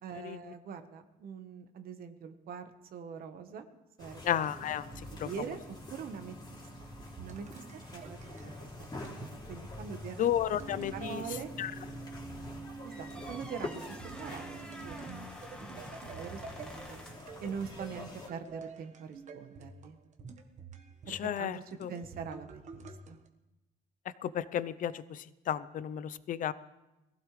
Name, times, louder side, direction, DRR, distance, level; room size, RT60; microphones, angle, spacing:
voice 1, 0.0-3.7 4.0-4.7 5.2-5.6 5.9-6.9 7.2-9.2 9.5-10.4 10.9-11.5 12.8-15.3 15.6-15.8 16.1-17.0 17.4-20.0 21.1-23.2, right 6 dB, 60° right, 7 dB, 1.3 m, -44 dB
sound 1, 4.0-18.3, left 2 dB, 25° left, 3.2 m, -46 dB
voice 2, 4.2-4.9 5.2-5.3 10.2-11.2 11.6-11.7 21.1-21.9 24.2-26.5, left 10 dB, 50° left, 16 dB, 0.6 m, -33 dB
sound 2, 4.4-9.4 10.3-23.3, right 4 dB, 45° right, 1.4 m, -48 dB
sound 3, 12.9-17.3, equal, 5° left, 1.5 m, -49 dB
21.5 x 15.5 x 3.3 m, 1.0 s
cardioid pair, 110°, 17 cm